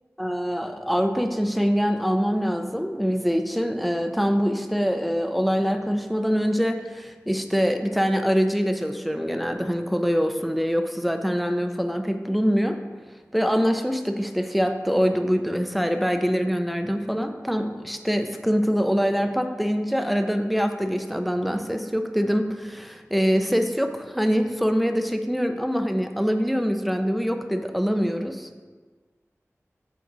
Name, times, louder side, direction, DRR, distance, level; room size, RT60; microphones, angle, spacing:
voice 1, 0.2-12.8 13.3-28.6, equal, ahead, 6 dB, 0.6 m, -24 dB
7.6 x 4.9 x 4.1 m, 1.4 s
wide cardioid pair, 55°, 5 cm